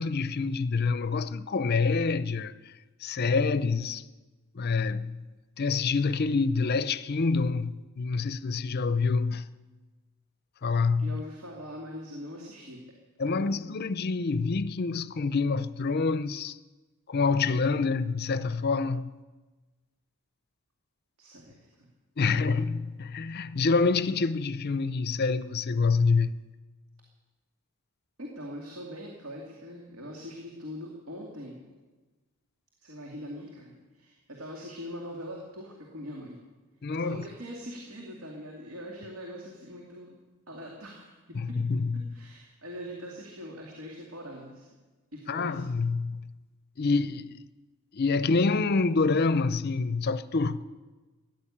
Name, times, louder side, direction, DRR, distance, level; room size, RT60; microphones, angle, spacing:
voice 1, 0.0-2.7 3.0-4.0 4.5-5.3 5.6-9.5 10.6-11.2 13.2-16.6 17.1-19.1 22.2-26.4 36.8-37.2 41.4-42.0 45.3-46.3 46.8-47.3 47.9-50.6, left 4 dB, 45° left, 0.5 m, -27 dB
voice 2, 11.0-12.8 13.3-13.6 21.2-21.9 22.2-22.5 28.2-31.6 32.8-36.4 36.9-40.2 40.5-41.6 41.9-44.7 45.1-45.7, equal, 70° right, 2.4 m, -42 dB
15.0 x 10.5 x 8.7 m
head